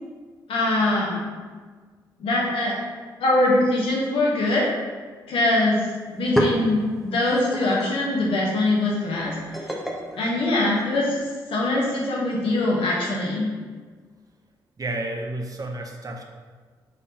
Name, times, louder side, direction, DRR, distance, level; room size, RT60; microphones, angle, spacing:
voice 1, 0.5-1.2 2.2-2.8 3.2-4.7 5.3-9.3 10.2-11.2 11.5-13.5, left 2 dB, 75° left, -3 dB, 1.1 m, -22 dB
sound 1, 5.6-5.7 6.0-11.2, equal, ahead, 0.8 m, -31 dB
voice 2, 14.8-16.2, right 2 dB, 40° right, 2 dB, 0.7 m, -31 dB
4.2 x 3.6 x 2.8 m, 1.5 s
supercardioid pair, 50°, 9 cm